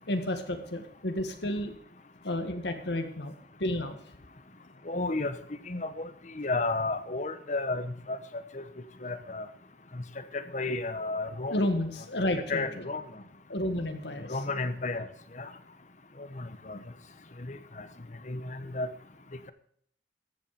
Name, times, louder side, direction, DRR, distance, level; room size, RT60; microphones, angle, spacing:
voice 1, 0.1-1.7 2.2-3.3 3.6-4.0 11.5-12.6 13.5-14.3, left 1 dB, 75° left, 6 dB, 1.7 m, -31 dB
voice 2, 4.9-5.4 5.7-6.1 6.3-8.2 8.5-8.6 9.0-9.5 9.9-10.0 10.3-11.6 12.5-13.0 14.3-15.1 15.4-15.5 16.4-16.8 17.4-17.8 18.3-18.9, left 3 dB, 40° left, 11 dB, 1.0 m, -32 dB
14.5 x 8.6 x 5.0 m, 0.63 s
head